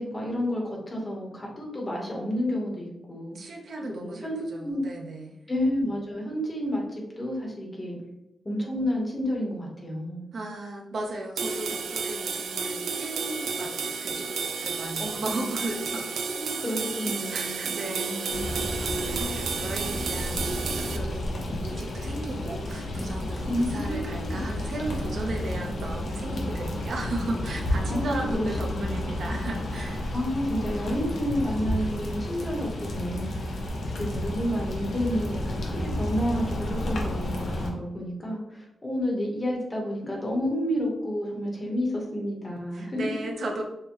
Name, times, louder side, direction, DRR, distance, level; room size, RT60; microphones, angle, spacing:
voice 1, 0.0-3.4 3.9-4.9 5.5-8.0 8.4-10.3 15.0-15.7 16.3-18.6 19.1-19.4 23.5-24.4 27.9-29.1 30.1-33.3 34.0-43.0, equal, 20° left, -2 dB, 1.0 m, -30 dB
voice 2, 3.3-5.4 10.3-16.2 16.5-16.6 17.3-30.1 42.7-43.6, right 2 dB, 55° right, 1 dB, 0.7 m, -36 dB
sound 1, 11.4-21.0, right 5 dB, 85° right, 0.4 m, -31 dB
sound 2, 18.3-37.7, left 1 dB, 70° left, 0.9 m, -31 dB
6.5 x 2.2 x 2.9 m, 0.90 s
wide cardioid pair, 170°, 0 cm